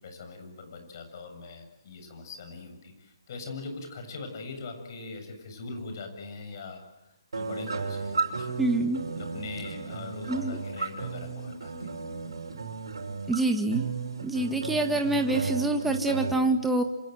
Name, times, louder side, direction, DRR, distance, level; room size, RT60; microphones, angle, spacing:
voice 1, 0.0-6.8 7.3-8.5 9.2-11.9, left 3 dB, 50° left, 5 dB, 7.4 m, -41 dB
sound 1, 7.3-16.3, right 4 dB, 80° right, 5.4 m, -34 dB
voice 2, 8.6-9.0 10.3-10.6 13.3-13.8 14.2-16.8, right 2 dB, 5° right, 4 dB, 1.8 m, -26 dB
27.5 x 26.5 x 7.9 m, 0.97 s
hypercardioid pair, 145°, 2 cm